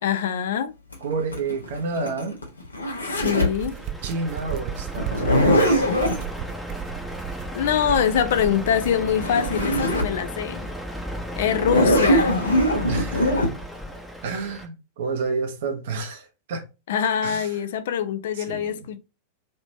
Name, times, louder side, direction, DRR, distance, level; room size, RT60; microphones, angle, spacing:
voice 1, 0.0-0.7 3.1-3.8 7.5-10.6 11.4-12.3 16.9-19.0, left 8 dB, 55° left, 0.4 m, -24 dB
Zipper (clothing), 0.9-3.6 5.0-6.2 8.8-8.9 9.1-10.2 10.6-10.7 11.5-13.5, equal, 80° left, 0.9 m, -21 dB
voice 2, 1.0-2.4 4.0-5.9 12.9-13.4 14.2-16.6 17.2-17.6 18.3-18.9, right 4 dB, 55° right, 0.9 m, -30 dB
sound 1, 3.0-10.2, right 12 dB, 40° right, 0.4 m, -35 dB
Truck, 3.5-14.7, equal, ahead, 0.7 m, -35 dB
3.3 x 2.9 x 2.7 m
figure-of-eight pair, 90°, 0 cm